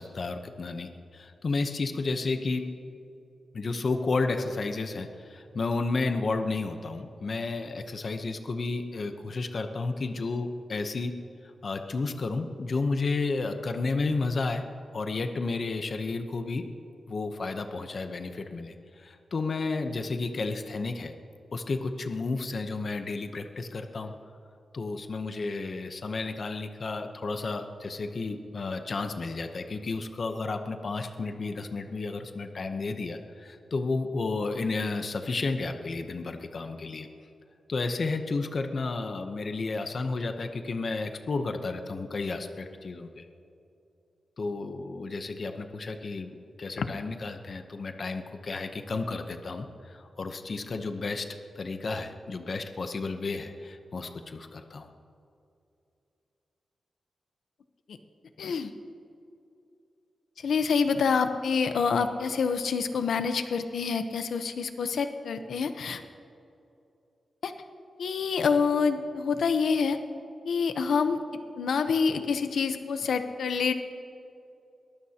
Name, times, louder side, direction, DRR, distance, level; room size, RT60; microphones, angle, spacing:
voice 1, 0.0-2.7 3.5-11.1 11.6-14.6 14.9-16.7 17.1-21.1 21.5-24.1 24.7-37.1 37.7-43.3 44.4-51.3 51.5-54.9, left 3 dB, 40° left, 6 dB, 0.8 m, -32 dB
voice 2, 58.4-58.7 60.4-66.0 67.4-67.5 68.0-70.0 70.4-71.2 71.6-73.7, left 5 dB, 75° left, 8 dB, 0.9 m, -27 dB
22.5 x 19.0 x 2.9 m, 2.6 s
wide cardioid pair, 180°, 0 cm